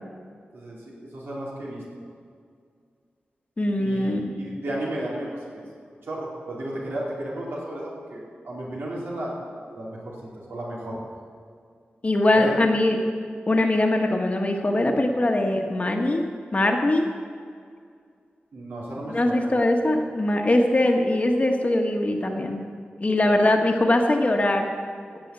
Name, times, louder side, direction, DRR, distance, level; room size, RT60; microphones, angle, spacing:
voice 1, 1.1-1.8 3.8-11.0 12.3-12.6 18.5-19.5, right 1 dB, 75° right, -5 dB, 4.3 m, -34 dB
voice 2, 3.6-4.3 12.0-13.0 13.5-16.2 16.5-17.1 19.1-22.6 23.0-24.7, left 1 dB, 35° left, 3 dB, 1.5 m, -21 dB
16.5 x 5.5 x 9.0 m, 2.2 s
wide cardioid pair, 70°, 4 cm